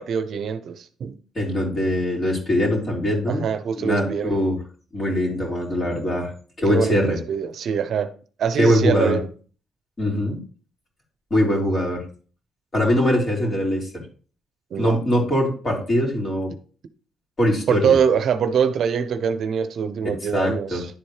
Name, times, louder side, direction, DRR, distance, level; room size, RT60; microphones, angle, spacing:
voice 1, 0.0-1.2 3.3-4.4 6.7-8.1 8.4-9.3 14.7-15.0 17.7-20.9, right 7 dB, 65° right, 0.6 m, -23 dB
voice 2, 1.3-3.4 3.8-4.6 4.9-6.3 6.6-7.2 8.6-9.2 10.0-10.4 11.3-12.0 12.7-14.0 14.7-16.5 17.4-18.0 20.0-20.8, left 1 dB, 35° left, 3.4 m, -22 dB
10.5 x 4.3 x 3.2 m
cardioid pair, 90°, 0 cm